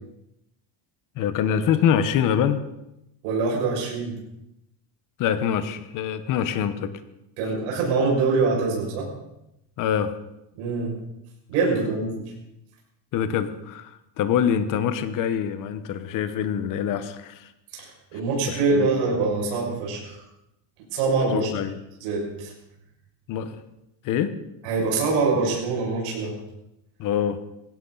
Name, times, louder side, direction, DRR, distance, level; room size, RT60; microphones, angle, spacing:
voice 1, 1.1-2.6 5.2-6.9 9.8-10.2 13.1-17.5 18.1-18.2 18.5-18.9 21.3-21.8 23.3-23.6 24.0-24.4 27.0-27.4, left 8 dB, 40° left, 11 dB, 1.2 m, -25 dB
voice 2, 3.2-4.1 7.4-9.1 10.6-11.0 11.5-12.2 17.7-20.2 20.9-21.5 22.0-22.5 24.6-26.4, right 4 dB, 75° right, -2 dB, 6.5 m, -24 dB
19.0 x 16.5 x 4.1 m, 0.87 s
cardioid pair, 170°, 49 cm